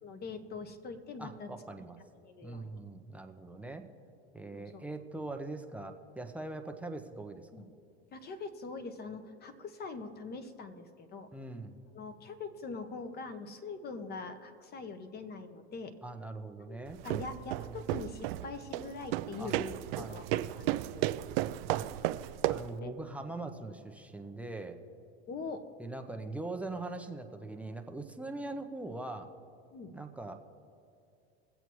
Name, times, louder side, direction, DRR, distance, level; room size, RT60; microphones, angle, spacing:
voice 1, 0.0-1.5 2.2-2.8 4.5-4.9 7.5-7.7 8.1-11.3 11.9-15.9 16.6-21.1 22.7-22.9 25.3-25.7 29.7-30.0, left 4 dB, 30° left, 9 dB, 1.1 m, -43 dB
voice 2, 1.2-2.0 2.4-3.9 4.3-7.6 11.3-11.8 16.0-17.0 17.3-17.7 19.4-19.5 20.0-20.2 21.7-22.0 22.4-24.8 25.8-29.3 29.9-30.4, right 2 dB, 5° right, 4 dB, 0.7 m, -42 dB
sound 1, 16.9-22.8, right 15 dB, 60° right, 0.5 m, -34 dB
22.5 x 8.0 x 3.1 m, 2.5 s
supercardioid pair, 120°, 33 cm